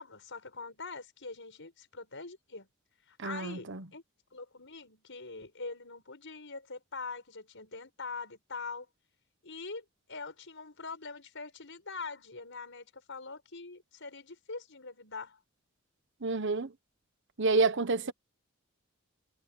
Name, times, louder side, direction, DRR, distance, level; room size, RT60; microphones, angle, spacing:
voice 1, 0.0-2.7 3.1-4.0 4.3-8.9 9.4-15.4 18.0-18.1, left 4 dB, 65° left, 6.8 m, -43 dB
voice 2, 3.2-3.8 16.2-16.7 17.4-18.1, right 3 dB, 60° right, 1.1 m, -28 dB
head